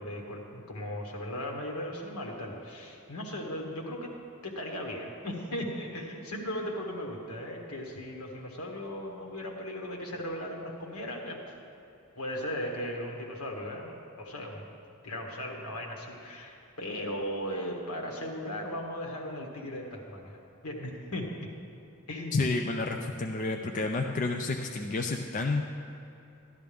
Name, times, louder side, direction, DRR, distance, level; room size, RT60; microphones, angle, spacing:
voice 1, 0.0-4.1 4.4-11.4 12.1-14.6 15.0-21.3 22.1-22.5, left 1 dB, 75° left, -1 dB, 1.7 m, -37 dB
voice 2, 22.3-25.6, left 3 dB, 35° left, 3 dB, 0.4 m, -30 dB
12.5 x 12.0 x 3.5 m, 2.8 s
head